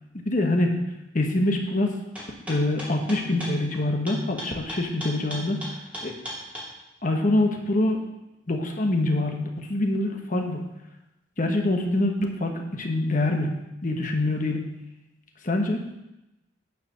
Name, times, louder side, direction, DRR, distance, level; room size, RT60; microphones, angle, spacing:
voice 1, 0.2-0.7 1.1-2.0 2.5-5.6 6.0-6.1 7.0-8.0 8.5-10.6 11.4-13.5 13.8-14.7 15.4-15.8, left 1 dB, 45° left, 3 dB, 1.2 m, -25 dB
sound 1, 2.2-6.7, equal, 10° right, 2.5 m, -35 dB
9.5 x 4.9 x 6.3 m, 0.93 s
head